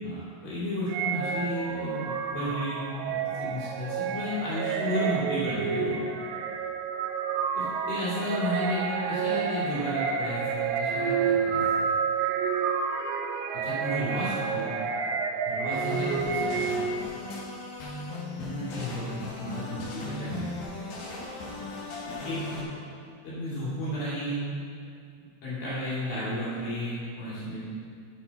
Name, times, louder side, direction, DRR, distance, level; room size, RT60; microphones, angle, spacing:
voice 1, 0.0-6.0 7.5-11.9 13.6-14.8 15.4-17.0 18.3-20.5 22.1-22.4 23.2-24.6 25.2-27.6, equal, 50° left, -10 dB, 3.9 m, -33 dB
sound 1, 0.9-17.1, right 6 dB, 90° right, 2.6 m, -29 dB
sound 2, 15.7-22.6, left 2 dB, 70° left, 2.0 m, -38 dB
8.8 x 7.5 x 4.1 m, 2.2 s
omnidirectional pair, 5.7 m